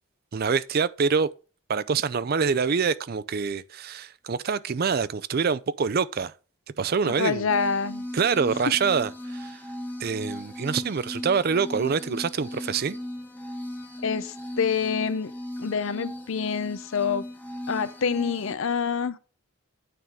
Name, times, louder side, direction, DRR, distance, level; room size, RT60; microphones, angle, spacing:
voice 1, 0.3-1.3 1.7-6.3 6.8-7.5 8.1-9.6 10.0-13.0, right 5 dB, 45° right, 0.4 m, -25 dB
voice 2, 7.0-8.0 14.0-15.3 15.6-17.3 17.7-19.2, left 6 dB, 65° left, 0.6 m, -27 dB
sound 1, 7.5-18.5, left 1 dB, 10° left, 1.0 m, -37 dB
9.4 x 3.6 x 6.2 m
head